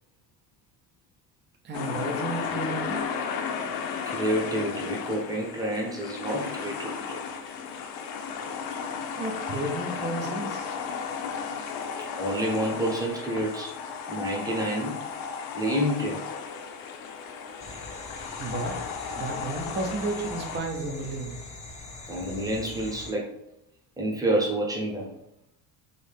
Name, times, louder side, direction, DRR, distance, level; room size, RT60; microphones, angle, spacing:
voice 1, 1.6-3.0 9.2-10.8 18.4-18.9 19.1-21.4, right 2 dB, 30° right, 2 dB, 0.6 m, -32 dB
sound 1, 1.7-20.6, left 6 dB, 65° left, 0.6 m, -34 dB
voice 2, 4.0-7.2 12.0-13.7 14.1-15.0 15.5-16.2 22.1-23.3 24.0-25.1, right 1 dB, 10° right, -2 dB, 0.9 m, -28 dB
sound 2, 17.6-23.1, left 2 dB, 20° left, 0.6 m, -42 dB
3.0 x 2.7 x 3.5 m, 0.81 s
cardioid pair, 120°, 39 cm